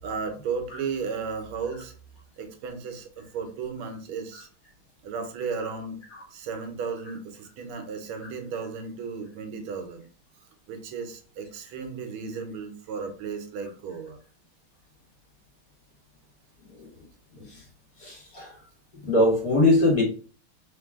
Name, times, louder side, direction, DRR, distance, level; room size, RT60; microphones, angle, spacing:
voice 1, 0.0-1.9 2.4-4.5 5.0-6.0 6.3-10.1 10.7-14.2, right 5 dB, 80° right, 6 dB, 1.6 m, -34 dB
voice 2, 18.0-18.5 19.0-20.0, left 2 dB, 45° left, -3 dB, 1.8 m, -22 dB
3.8 x 3.1 x 3.5 m, 0.40 s
omnidirectional pair, 2.3 m